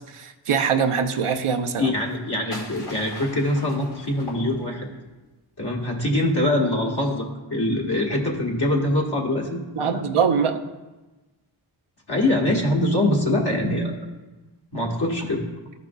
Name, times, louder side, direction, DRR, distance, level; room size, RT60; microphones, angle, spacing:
voice 1, 0.1-1.9 9.8-10.6, right 6 dB, 85° right, 6 dB, 0.6 m, -23 dB
voice 2, 1.8-4.9 5.6-10.0 12.1-13.9 14.7-15.4, left 1 dB, 50° left, -1 dB, 1.5 m, -23 dB
sound 1, 2.0-5.0, left 1 dB, 85° left, 2.0 m, -40 dB
12.5 x 5.0 x 2.3 m, 1.1 s
wide cardioid pair, 60°, 49 cm